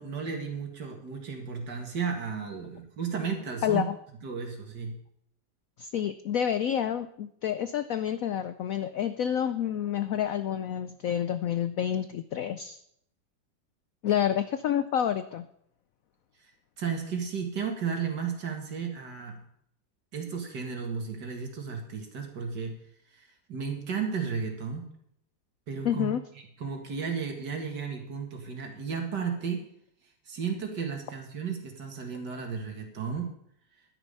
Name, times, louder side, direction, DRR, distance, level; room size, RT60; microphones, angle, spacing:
voice 1, 0.0-3.8 4.2-5.0 16.8-19.4 20.1-22.7 23.1-24.9 25.7-26.1 26.6-29.6 30.3-33.3, right 6 dB, 65° right, 3 dB, 2.5 m, -34 dB
voice 2, 3.6-3.9 5.8-12.8 14.0-15.4 25.8-26.2, left 9 dB, 75° left, 11 dB, 0.8 m, -28 dB
11.5 x 10.0 x 5.4 m, 0.71 s
omnidirectional pair, 2.0 m